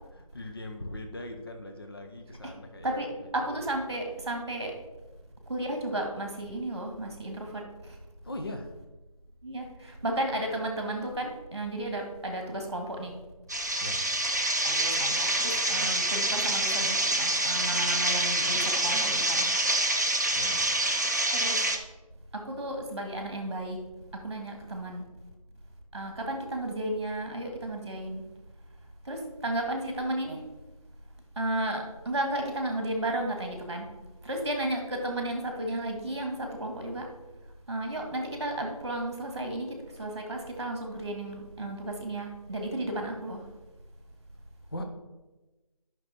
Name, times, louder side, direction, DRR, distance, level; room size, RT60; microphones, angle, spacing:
voice 1, 0.1-3.6 8.2-8.7 13.8-14.1 20.3-20.7 44.7-44.9, left 1 dB, 40° left, 4 dB, 0.8 m, -40 dB
voice 2, 2.8-4.7 5.5-8.0 9.4-13.1 14.6-19.5 21.3-21.6 22.3-23.8 24.1-25.0 25.9-28.2 29.1-30.4 31.4-33.9 34.2-37.1 37.7-43.4, right 1 dB, 45° right, 2 dB, 2.0 m, -33 dB
sound 1, 13.5-21.8, right 1 dB, 30° right, 0.6 m, -26 dB
9.9 x 6.0 x 4.3 m, 1.1 s
figure-of-eight pair, 175°, 19 cm